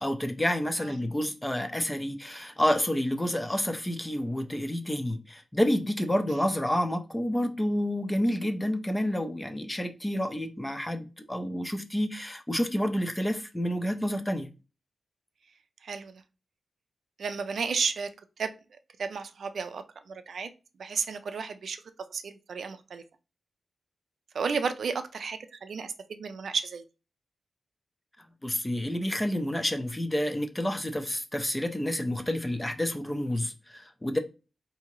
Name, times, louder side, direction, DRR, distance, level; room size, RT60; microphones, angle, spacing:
voice 1, 0.0-14.5 28.4-34.2, equal, 10° left, 0.4 m, -29 dB
voice 2, 15.8-16.2 17.2-18.1 18.4-18.5 19.0-20.5 20.8-21.8 22.1-23.0 24.3-26.8, right 5 dB, 70° right, 0.4 m, -33 dB
4.8 x 2.7 x 2.9 m
wide cardioid pair, 165°, 0 cm